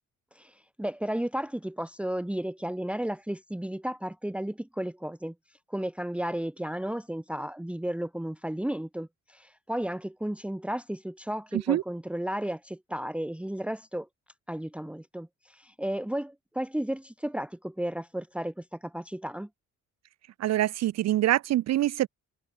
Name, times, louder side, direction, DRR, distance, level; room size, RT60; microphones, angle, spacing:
voice 1, 0.3-5.3 5.7-14.1 14.5-19.5, right 1 dB, 5° right, 1.4 m, -33 dB
voice 2, 20.4-22.1, right 14 dB, 60° right, 0.5 m, -25 dB
cardioid pair, 90°, 30 cm